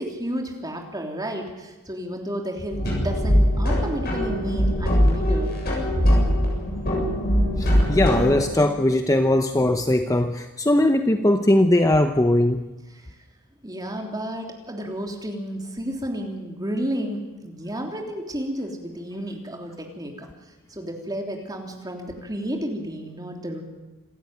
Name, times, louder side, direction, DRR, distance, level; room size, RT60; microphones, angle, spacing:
voice 1, 0.0-5.6 12.9-13.1 13.6-20.1 20.7-23.6, equal, 15° right, 1 dB, 3.3 m, -32 dB
sound 1, 2.7-8.4, equal, 45° left, 7.5 m, -21 dB
voice 2, 7.6-12.6, left 1 dB, 15° left, 7 dB, 0.7 m, -20 dB
27.0 x 13.0 x 9.5 m, 1.2 s
head